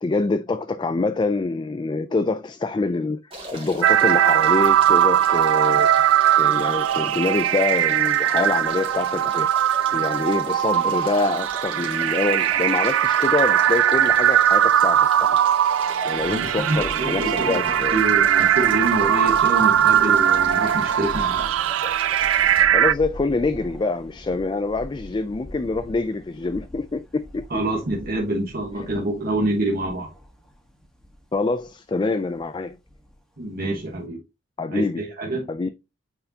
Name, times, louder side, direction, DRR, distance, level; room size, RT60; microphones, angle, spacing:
voice 1, 0.0-5.9 6.4-9.5 9.9-15.4 16.0-18.0 22.7-27.6 31.3-32.8 34.6-35.0 35.5-35.7, left 3 dB, 25° left, 0.3 m, -25 dB
sound 1, 3.3-22.6, right 1 dB, 30° right, 2.4 m, -39 dB
sound 2, 3.8-22.9, right 10 dB, 85° right, 0.4 m, -20 dB
sound 3, 16.1-34.1, left 1 dB, 5° left, 1.3 m, -42 dB
voice 2, 16.3-21.5 27.5-30.1 33.4-34.2 34.7-35.5, right 1 dB, 50° right, 1.3 m, -26 dB
8.6 x 4.6 x 2.8 m
head